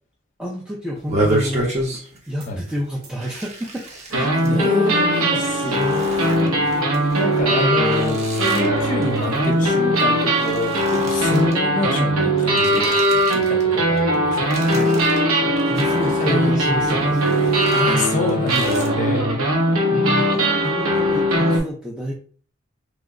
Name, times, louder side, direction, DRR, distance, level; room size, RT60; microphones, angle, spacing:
voice 1, 0.4-1.8 2.3-4.5 4.9-5.5 14.6-15.0 15.4-17.4 20.0-22.1, equal, 5° right, -5 dB, 0.5 m, -30 dB
sound 1, 1.0-2.3 2.6-2.8 3.2-4.7 5.3-10.0 10.3-11.6 12.4-13.6 14.0-15.2 15.6-16.3 16.7-18.9, right 1 dB, 30° right, 0.8 m, -30 dB
sound 2, 2.4-2.5 3.0-3.1 4.1-21.6, right 1 dB, 85° right, 0.9 m, -20 dB
voice 2, 4.4-14.7 16.0-16.5 17.7-19.3 19.9-20.7, left 2 dB, 40° left, 3 dB, 0.7 m, -27 dB
3.1 x 2.0 x 3.6 m, 0.42 s
head